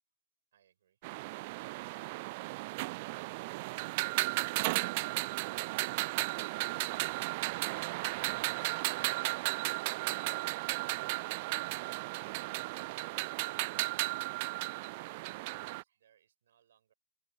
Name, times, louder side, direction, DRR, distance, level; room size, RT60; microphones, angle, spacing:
sound 1, 1.0-15.8, right 24 dB, 50° right, 0.4 m, -35 dB
voice 1, 13.3-16.9, right 10 dB, 65° right, 6.0 m, -67 dB
open air
figure-of-eight pair, 95°, 0 cm